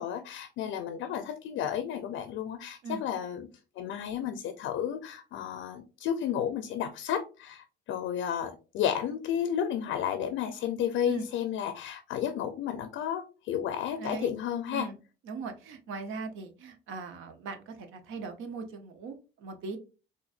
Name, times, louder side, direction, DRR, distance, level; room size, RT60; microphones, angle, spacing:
voice 1, 0.0-3.5 3.8-14.9, left 9 dB, 85° left, 9 dB, 0.4 m, -32 dB
voice 2, 14.0-14.3 14.7-15.0 15.2-19.8, right 4 dB, 85° right, 7 dB, 0.7 m, -39 dB
3.9 x 2.5 x 2.4 m, 0.33 s
cardioid pair, 90°, 20 cm